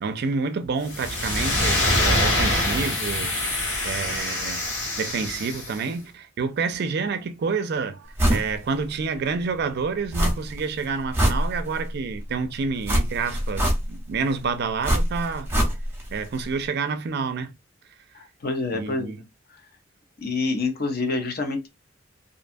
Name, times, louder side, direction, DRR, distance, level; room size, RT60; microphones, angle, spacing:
voice 1, 0.0-3.5 3.8-4.7 5.0-15.5 16.1-17.5 18.7-19.2, right 5 dB, 60° right, 0.4 m, -28 dB
sound 1, 0.9-5.8, left 1 dB, 70° left, 1.5 m, -25 dB
sound 2, 8.2-8.5 8.9-9.0 10.1-10.6 11.0-11.9 12.8-14.1 14.8-16.1 16.3-16.4, equal, 15° right, 0.9 m, -23 dB
voice 2, 18.1-19.2 19.5-19.6 20.2-21.7, left 3 dB, 55° left, 0.7 m, -27 dB
2.6 x 2.2 x 2.5 m
head